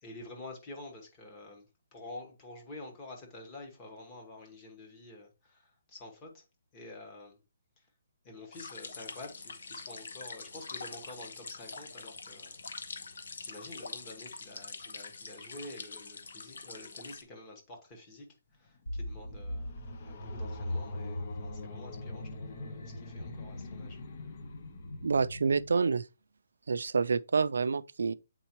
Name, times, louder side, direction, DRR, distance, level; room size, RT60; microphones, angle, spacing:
voice 1, 0.0-6.4 6.7-7.4 7.8-7.9 8.2-24.0, left 2 dB, 15° left, 1.1 m, -49 dB
sound 1, 8.5-17.2, left 4 dB, 65° left, 1.0 m, -44 dB
sound 2, 18.6-25.9, left 3 dB, 30° left, 0.7 m, -48 dB
sound 3, 18.9-25.7, left 1 dB, 90° left, 2.3 m, -40 dB
voice 2, 25.0-26.0 26.7-28.1, right 5 dB, 80° right, 0.4 m, -28 dB
7.9 x 4.6 x 2.9 m
hypercardioid pair, 180°, 0 cm